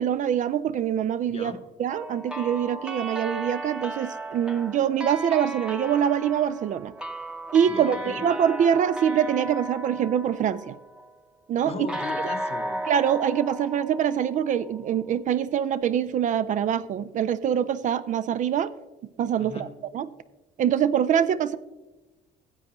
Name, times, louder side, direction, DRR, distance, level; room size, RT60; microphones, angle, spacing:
voice 1, 0.0-1.5 1.8-6.9 7.5-10.8 11.5-11.7 12.9-18.7 19.2-19.7 19.9-20.1 20.6-21.6, right 9 dB, 50° right, 15 dB, 0.4 m, -24 dB
voice 2, 1.3-1.6 7.7-8.3 11.6-12.8 19.4-19.7, left 5 dB, 35° left, 10 dB, 0.9 m, -37 dB
sound 1, 1.9-11.1 11.9-14.8, right 1 dB, 5° right, 0.8 m, -35 dB
15.0 x 7.7 x 3.0 m, 1.1 s
cardioid pair, 110°, 17 cm